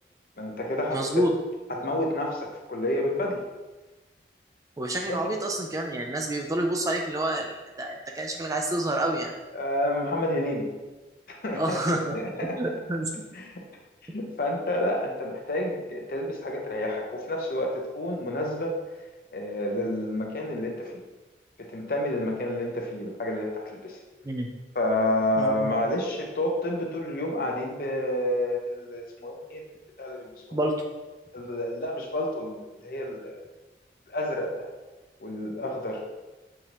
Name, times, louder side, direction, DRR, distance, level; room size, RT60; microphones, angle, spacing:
voice 1, 0.4-1.2 1.7-3.4 5.1-5.2 9.5-10.7 11.3-12.6 13.3-13.6 14.1-18.7 19.3-21.0 21.7-24.0 24.7-29.6 30.0-30.6 31.3-32.6 32.8-33.4 34.1-34.7 35.2-36.0, left 1 dB, 55° left, 1 dB, 0.7 m, -29 dB
voice 2, 0.9-1.3 4.8-9.3 11.5-13.1 24.2-24.5 25.4-25.7 30.5-30.8, right 1 dB, 20° right, 2 dB, 0.3 m, -28 dB
6.5 x 2.7 x 3.0 m, 1.2 s
head